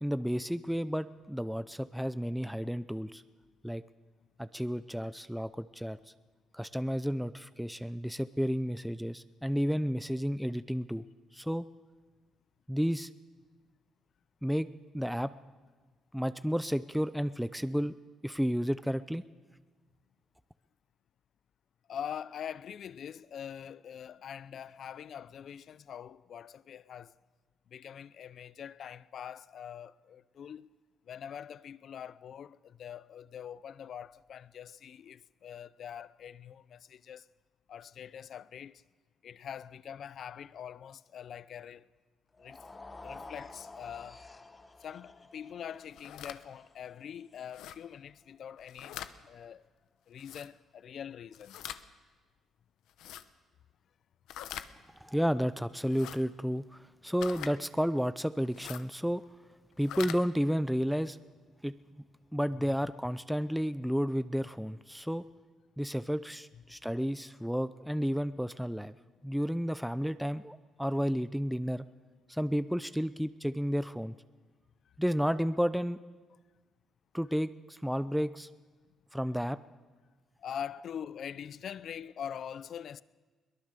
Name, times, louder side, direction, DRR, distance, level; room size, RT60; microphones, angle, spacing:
voice 1, 0.0-3.2 3.6-3.8 4.4-6.0 6.5-11.0 11.3-11.6 12.7-13.1 14.4-14.7 14.9-15.3 16.1-18.0 18.2-19.2 55.0-59.2 59.8-61.2 61.6-61.7 62.3-65.2 65.8-68.9 69.2-71.9 72.3-74.1 75.0-76.0 77.1-78.5 79.1-79.6, equal, ahead, 0.6 m, -32 dB
voice 2, 21.9-27.1 27.7-30.7 31.1-37.3 37.7-38.8 39.2-41.9 42.4-44.2 44.8-49.0 49.2-49.7 50.1-51.6 54.8-54.9 66.5-66.8 74.9-75.0 80.4-83.0, left 8 dB, 60° left, 0.6 m, -44 dB
sound 1, 42.3-48.6, left 3 dB, 25° left, 1.3 m, -51 dB
sound 2, 45.8-46.4 47.5-47.8 48.6-49.1 50.2-50.5 51.3-51.8 52.9-53.2 54.3-54.7 55.8-56.2 57.2-57.5 58.5-58.8 59.7-60.2, left 11 dB, 85° left, 0.9 m, -43 dB
22.0 x 19.0 x 6.8 m
cardioid pair, 90°, 0 cm